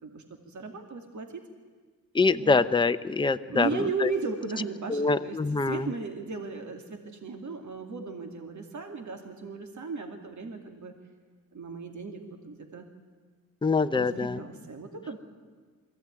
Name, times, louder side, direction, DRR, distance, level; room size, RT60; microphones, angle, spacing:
voice 1, 0.0-1.4 2.4-2.6 3.5-10.9 11.5-12.9 13.9-15.2, right 4 dB, 55° right, 5 dB, 2.4 m, -36 dB
voice 2, 2.1-4.1 4.9-5.9 13.6-14.4, left 4 dB, 15° left, 10 dB, 0.7 m, -25 dB
21.5 x 15.5 x 9.7 m, 1.5 s
cardioid pair, 85°, 35 cm